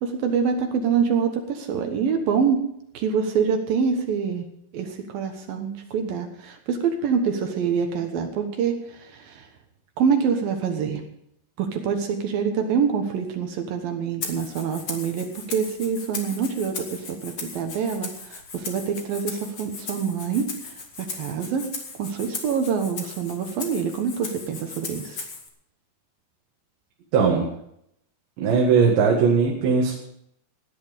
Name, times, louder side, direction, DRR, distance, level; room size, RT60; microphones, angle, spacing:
voice 1, 0.0-2.6 2.9-4.4 4.7-9.5 10.0-11.0 11.6-21.7 22.0-25.2, right 6 dB, 65° right, 5 dB, 2.7 m, -26 dB
Rattle (instrument), 14.2-25.5, left 4 dB, 40° left, 2.0 m, -37 dB
voice 2, 27.1-27.5 28.4-29.9, right 5 dB, 85° right, -2 dB, 4.2 m, -19 dB
17.5 x 10.5 x 5.1 m, 0.73 s
omnidirectional pair, 4.9 m